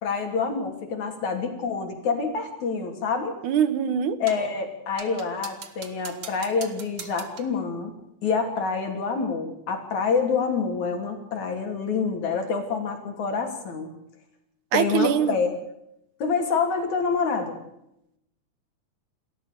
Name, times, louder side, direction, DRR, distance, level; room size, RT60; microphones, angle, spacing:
voice 1, 0.0-3.4 4.2-7.9 8.2-13.9 14.7-15.5 16.2-17.6, left 5 dB, 70° left, 5 dB, 4.4 m, -27 dB
voice 2, 3.4-4.2 14.7-15.4, right 8 dB, 80° right, 13 dB, 2.7 m, -23 dB
sound 1, 4.3-4.5 5.0-7.6, right 6 dB, 45° right, 1.6 m, -42 dB
28.0 x 13.5 x 6.7 m, 0.81 s
omnidirectional pair, 3.5 m